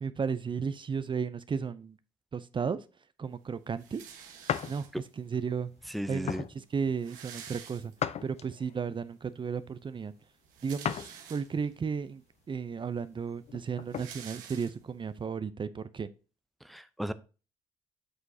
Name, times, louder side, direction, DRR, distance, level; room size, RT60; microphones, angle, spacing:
voice 1, 0.0-2.0 2.3-2.8 3.2-4.0 4.7-4.9 5.2-5.7 6.1-7.9 8.2-10.1 10.6-12.2 12.5-16.1, right 6 dB, 35° right, 0.6 m, -34 dB
sound 1, 3.8-5.2 6.1-6.2 6.4-6.5 6.7-8.3 8.8-8.9 10.3-11.8 12.4-12.5 12.8-15.1, right 8 dB, 80° right, 1.3 m, -49 dB
sound 2, 4.5-4.8 5.3-5.5 6.2-6.5 8.0-8.7 10.8-11.1 11.6-11.7 13.4-14.1, left 9 dB, 50° left, 0.5 m, -34 dB
voice 2, 5.9-6.4 16.6-17.1, equal, ahead, 0.7 m, -35 dB
7.9 x 6.1 x 2.8 m
hypercardioid pair, 55°, 14 cm